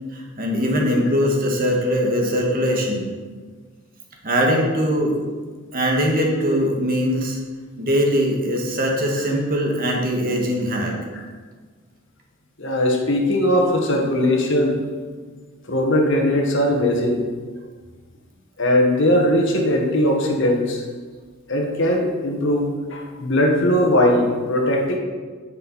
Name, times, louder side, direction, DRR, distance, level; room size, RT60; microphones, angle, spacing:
voice 1, 0.1-3.1 4.2-5.2 5.7-7.4 7.8-10.9 14.2-14.3 23.5-23.6, equal, 45° right, 0 dB, 1.8 m, -21 dB
voice 2, 12.6-14.8 15.7-17.2 18.6-20.8 21.5-25.0, left 1 dB, 65° left, 1 dB, 1.7 m, -19 dB
10.5 x 7.8 x 4.3 m, 1.5 s
head